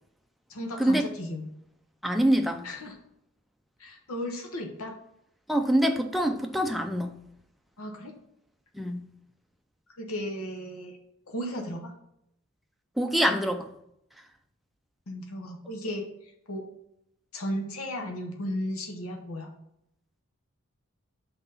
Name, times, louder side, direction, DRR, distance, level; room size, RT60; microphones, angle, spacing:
voice 1, 0.5-1.4 2.6-3.0 3.8-4.9 7.8-8.1 10.0-11.0 11.3-11.9 15.1-16.1 16.5-16.6 17.3-19.5, equal, 80° left, 3 dB, 1.0 m, -35 dB
voice 2, 2.0-2.7 5.5-7.1 8.8-9.0 13.0-13.7, right 1 dB, ahead, 4 dB, 0.4 m, -25 dB
5.8 x 4.0 x 5.5 m, 0.78 s
head